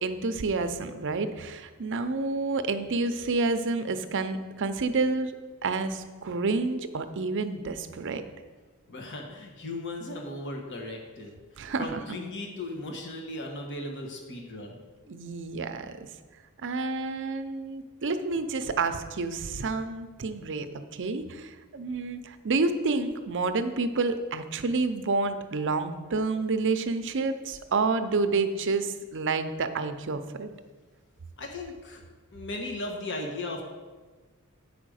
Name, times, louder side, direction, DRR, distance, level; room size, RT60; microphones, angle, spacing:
voice 1, 0.0-5.3 5.6-8.2 11.6-12.0 15.1-16.0 16.6-30.5, right 3 dB, 60° right, 9 dB, 0.6 m, -29 dB
voice 2, 8.9-11.4 11.8-14.8 31.4-32.0 32.3-33.6, left 2 dB, 60° left, 1 dB, 1.2 m, -37 dB
9.0 x 5.0 x 6.3 m, 1.3 s
head